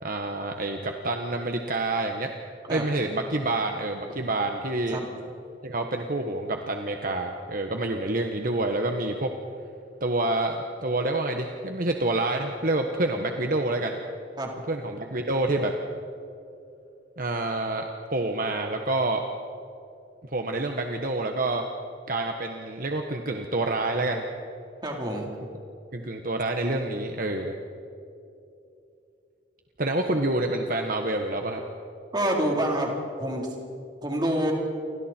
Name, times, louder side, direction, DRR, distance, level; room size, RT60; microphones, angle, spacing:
voice 1, 0.0-2.3 2.7-5.0 5.6-9.3 10.0-14.0 14.7-15.7 17.2-19.2 20.2-21.6 22.1-24.2 25.9-27.5 29.8-31.6, right 2 dB, 50° right, 4 dB, 1.4 m, -27 dB
voice 2, 24.8-25.3 32.1-32.9 33.2-33.5 34.0-34.5, right 1 dB, 25° right, 0 dB, 4.0 m, -26 dB
29.5 x 25.0 x 4.5 m, 2.7 s
head